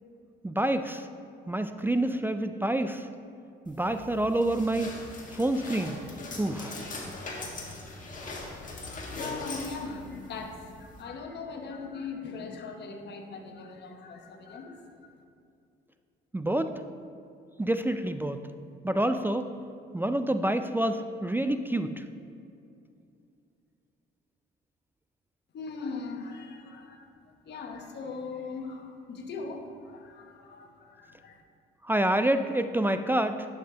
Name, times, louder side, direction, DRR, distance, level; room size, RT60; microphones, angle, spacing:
voice 1, 0.4-1.1 1.5-3.1 3.7-4.9 5.3-6.0 6.4-6.8 16.3-16.8 17.6-18.4 18.8-19.5 19.9-22.0 31.8-33.5, right 1 dB, 10° right, 9 dB, 0.3 m, -27 dB
sound 1, 3.7-11.0, left 2 dB, 40° left, 1.6 m, -41 dB
voice 2, 8.8-15.1 25.5-27.1 27.4-31.4, left 4 dB, 60° left, 3 dB, 1.1 m, -40 dB
11.0 x 5.5 x 2.8 m, 2.5 s
supercardioid pair, 70°, 20 cm